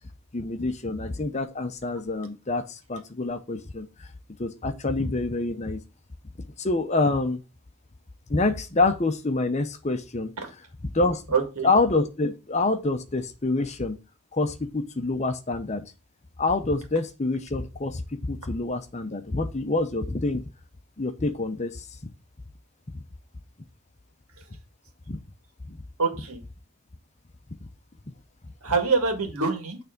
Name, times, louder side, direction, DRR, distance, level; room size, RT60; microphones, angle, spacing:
voice 1, 0.3-4.1 4.4-5.8 6.6-7.4 8.3-10.3 10.9-11.2 11.6-14.0 14.3-15.8 16.4-20.4 21.0-21.8 22.9-23.0 25.1-25.2 25.7-25.8, left 3 dB, 30° left, 9 dB, 0.7 m, -26 dB
voice 2, 11.3-11.7 26.0-26.4 28.6-29.8, right 4 dB, 80° right, 4 dB, 1.9 m, -25 dB
9.4 x 3.4 x 5.1 m, 0.30 s
head